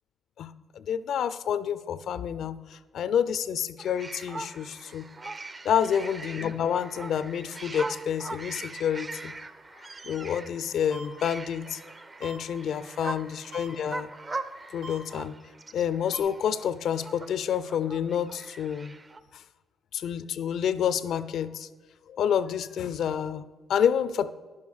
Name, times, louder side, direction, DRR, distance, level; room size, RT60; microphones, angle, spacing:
voice 1, 0.4-5.1 5.6-9.3 10.0-11.8 12.2-14.1 14.7-15.3 15.7-18.9 19.3-19.4 19.9-21.7 22.1-24.3, left 8 dB, 70° left, 15 dB, 0.4 m, -28 dB
sound 1, 3.8-19.2, right 3 dB, 30° right, 0.5 m, -41 dB
sound 2, 10.9-11.1 12.2-12.4 13.5-13.7 14.8-15.0 16.1-16.2, right 3 dB, 85° right, 2.1 m, -41 dB
10.5 x 7.1 x 4.8 m, 1.3 s
cardioid pair, 90°, 0 cm